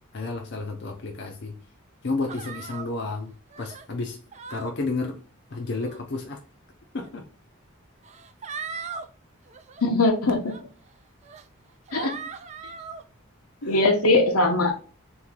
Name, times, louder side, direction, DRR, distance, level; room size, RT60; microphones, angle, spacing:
voice 1, 0.1-1.6 2.0-4.2 4.5-5.2 5.5-6.4 6.9-7.3 13.6-13.7, left 3 dB, 50° left, 0.5 m, -31 dB
sound 1, 2.3-2.9 3.5-3.9 4.3-4.7 5.6-6.0 7.0-7.1 8.0-9.1 9.5-9.8 10.5-10.6 11.2-11.5 11.9-13.0, right 5 dB, 30° right, 0.3 m, -38 dB
voice 2, 9.8-10.6 11.9-12.1 13.6-14.7, left 2 dB, 85° left, 1.0 m, -21 dB
3.8 x 3.0 x 3.6 m
head